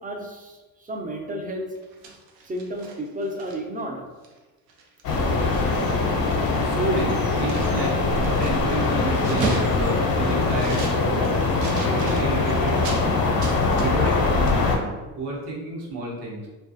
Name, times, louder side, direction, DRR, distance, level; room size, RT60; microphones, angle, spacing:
voice 1, 0.0-1.7 2.5-4.0, equal, 20° right, 1 dB, 0.4 m, -32 dB
sound 1, 1.7-3.8 4.2-4.4 4.7-5.9 6.2-13.0 13.4-14.2 14.5-14.6, right 3 dB, 85° right, 0.6 m, -36 dB
sound 2, 5.0-14.8, left 3 dB, 55° left, 0.7 m, -22 dB
voice 2, 6.6-13.3 13.7-16.5, right 2 dB, 70° right, -2 dB, 0.9 m, -31 dB
2.3 x 2.3 x 2.6 m, 1.2 s
supercardioid pair, 75°, 43 cm